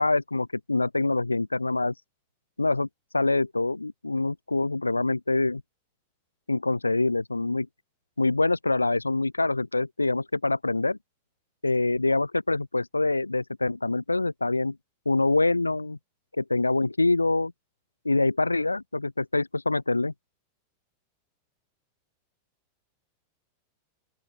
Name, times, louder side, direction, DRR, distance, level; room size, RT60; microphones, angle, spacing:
voice 1, 0.0-1.9 2.6-2.9 3.1-5.6 6.5-7.7 8.2-11.0 11.6-14.8 15.1-16.0 16.4-17.5 18.0-20.1, left 2 dB, 80° left, 3.8 m, -25 dB
open air
figure-of-eight pair, 90°, 0 cm